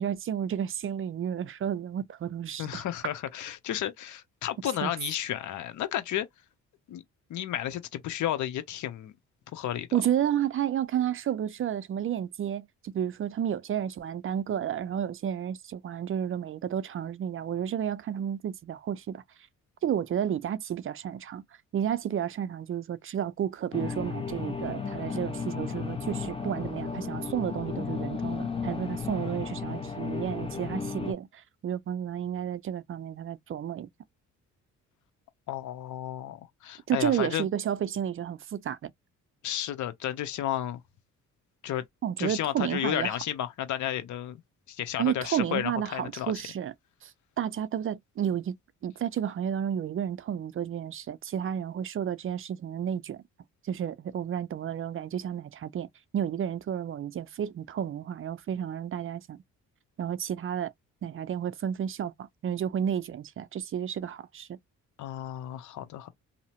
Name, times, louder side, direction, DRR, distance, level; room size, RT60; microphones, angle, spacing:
voice 1, 0.0-2.8 4.8-4.9 9.9-19.2 19.8-21.4 21.7-33.9 36.9-38.9 42.0-43.1 45.0-46.7 47.0-47.1 47.4-48.5 48.8-53.2 53.6-55.9 56.1-59.4 60.0-60.7 61.0-64.6, right 9 dB, 45° right, 0.5 m, -31 dB
voice 2, 2.6-6.3 6.9-7.0 7.3-9.1 9.5-9.9 35.5-37.5 39.4-40.8 41.6-41.8 42.2-44.4 44.7-46.3 65.0-66.1, left 12 dB, 75° left, 0.8 m, -32 dB
sound 1, 23.7-31.1, left 5 dB, 20° left, 0.9 m, -34 dB
2.8 x 2.0 x 2.9 m
cardioid pair, 90°, 30 cm